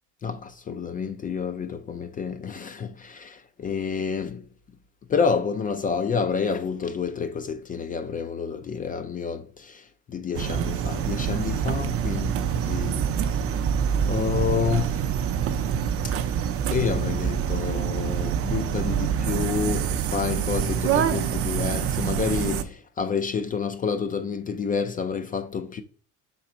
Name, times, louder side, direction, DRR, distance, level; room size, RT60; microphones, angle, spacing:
voice 1, 0.2-4.4 5.1-9.8 10.1-12.3 12.6-13.0 14.1-15.0 16.7-25.8, left 6 dB, 25° left, 0.3 m, -29 dB
sound 1, 10.3-22.6, right 8 dB, 40° right, 0.6 m, -26 dB
5.8 x 3.9 x 4.3 m
cardioid pair, 135°, 35 cm